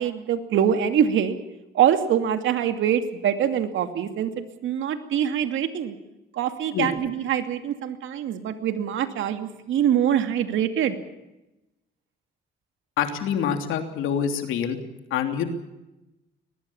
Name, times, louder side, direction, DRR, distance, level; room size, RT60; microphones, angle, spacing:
voice 1, 0.0-1.4 1.7-5.9 6.4-10.9, right 9 dB, 80° right, 8 dB, 2.6 m, -24 dB
voice 2, 13.0-14.8 15.1-15.4, left 8 dB, 85° left, 6 dB, 3.1 m, -26 dB
22.0 x 20.0 x 7.2 m, 0.97 s
cardioid pair, 90°, 20 cm